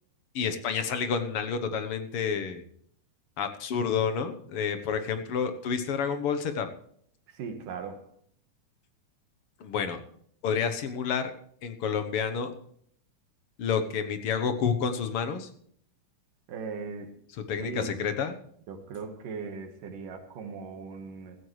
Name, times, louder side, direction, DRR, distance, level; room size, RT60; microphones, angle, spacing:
voice 1, 0.3-2.6 3.4-6.7 9.6-10.0 10.4-11.3 11.6-12.5 13.6-15.5 17.5-18.4, left 6 dB, 60° left, 1.6 m, -29 dB
voice 2, 7.3-8.0 16.5-17.1 17.6-18.1 18.7-21.4, right 5 dB, 90° right, 3.1 m, -38 dB
15.5 x 14.5 x 3.2 m
omnidirectional pair, 3.7 m